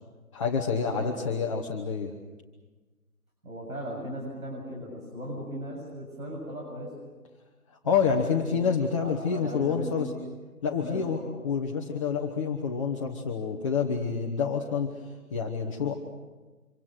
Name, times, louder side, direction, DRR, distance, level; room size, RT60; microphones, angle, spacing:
voice 1, 0.3-2.1 7.7-10.1 10.6-11.2 11.4-15.9, left 6 dB, 20° left, 0 dB, 1.3 m, -28 dB
voice 2, 0.9-1.4 3.4-6.9 7.8-8.6 8.9-10.1 10.7-11.3, equal, 70° right, -3 dB, 7.9 m, -38 dB
26.5 x 25.5 x 6.5 m, 1.3 s
figure-of-eight pair, 145°, 44 cm